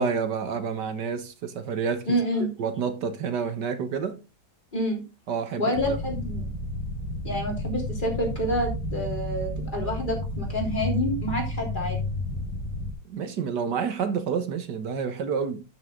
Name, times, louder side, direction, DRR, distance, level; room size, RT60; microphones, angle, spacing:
voice 1, 0.0-2.1 2.6-4.2 5.3-6.0 13.1-15.6, right 6 dB, 75° right, 1.8 m, -29 dB
voice 2, 2.1-2.5 4.7-5.0 5.6-6.4 7.3-12.0, equal, 25° left, 3.6 m, -28 dB
sound 1, 5.7-12.9, left 1 dB, 65° left, 2.5 m, -31 dB
12.5 x 6.6 x 3.8 m
omnidirectional pair, 1.8 m